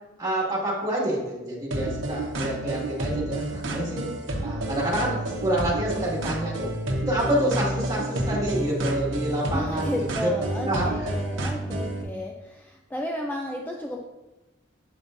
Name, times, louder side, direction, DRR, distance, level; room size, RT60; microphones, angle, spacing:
voice 1, 0.2-4.1 4.4-6.7 7.1-10.3 10.6-11.1, right 1 dB, 20° right, -5 dB, 2.1 m, -28 dB
sound 1, 1.7-12.0, right 1 dB, 80° right, 1.0 m, -30 dB
voice 2, 9.5-14.0, left 1 dB, 10° left, 0 dB, 0.4 m, -33 dB
7.5 x 6.8 x 2.6 m, 1.1 s
head